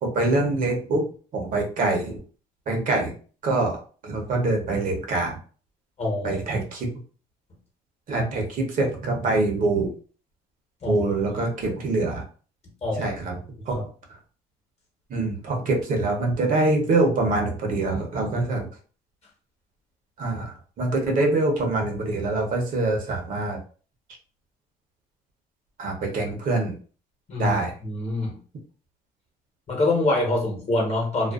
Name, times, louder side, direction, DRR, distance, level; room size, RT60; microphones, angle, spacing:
voice 1, 0.0-1.1 1.3-2.2 2.7-3.1 3.4-3.8 4.0-5.4 6.2-6.9 8.1-9.9 10.9-12.2 13.0-13.4 13.7-13.8 15.1-18.7 20.2-23.6 25.8-26.7 27.4-27.7, right 2 dB, 55° right, 1 dB, 0.8 m, -24 dB
voice 2, 6.0-6.4 8.1-8.2 10.8-11.0 12.8-13.1 13.8-13.9 27.3-28.4 29.7-31.3, left 2 dB, 40° left, 0 dB, 1.0 m, -25 dB
2.4 x 2.2 x 2.3 m, 0.39 s
cardioid pair, 110°, 17 cm